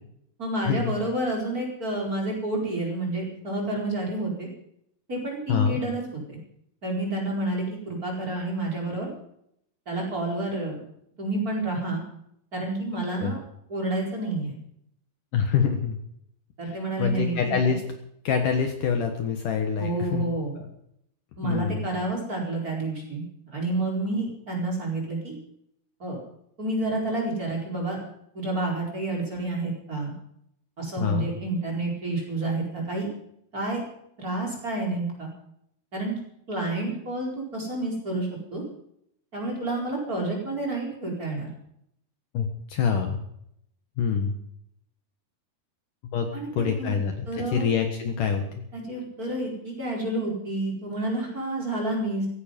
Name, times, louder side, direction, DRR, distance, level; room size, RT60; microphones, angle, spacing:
voice 1, 0.4-4.5 5.1-6.4 6.8-9.1 9.9-10.8 11.2-12.0 12.5-13.4 13.7-14.5 16.6-17.7 19.8-20.5 21.4-25.4 26.0-26.2 26.6-28.0 28.3-30.1 30.8-33.1 33.5-33.8 34.2-35.3 35.9-36.2 36.5-38.6 39.3-41.5 46.3-47.0 47.3-47.7 48.7-52.3, right 2 dB, 20° right, -1 dB, 4.8 m, -29 dB
voice 2, 5.5-5.8 13.2-13.3 15.3-16.0 16.6-17.8 18.2-20.3 20.6-20.7 21.4-21.9 31.0-31.3 42.3-43.2 44.0-44.3 46.1-46.3 46.5-47.3 47.5-48.6, left 6 dB, 60° left, 4 dB, 2.8 m, -25 dB
17.0 x 16.0 x 5.3 m, 0.73 s
omnidirectional pair, 4.6 m